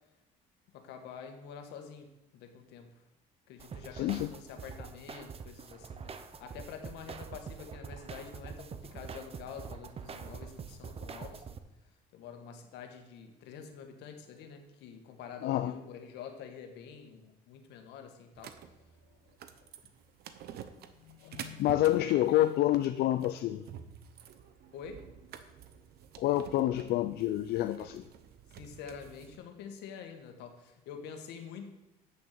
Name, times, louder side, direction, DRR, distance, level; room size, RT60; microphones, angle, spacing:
voice 1, 0.7-2.9 3.5-11.6 12.1-18.6 24.7-25.0 28.6-31.7, left 7 dB, 85° left, 6 dB, 1.5 m, -47 dB
sound 1, 3.6-11.6, right 6 dB, 35° right, 0.8 m, -45 dB
voice 2, 3.9-4.3 15.4-15.7 21.2-23.6 26.2-28.0, left 14 dB, 70° left, 10 dB, 0.5 m, -28 dB
sound 2, 18.4-29.4, right 9 dB, 70° right, 0.9 m, -49 dB
8.5 x 7.1 x 6.6 m, 0.98 s
cardioid pair, 110°, 17 cm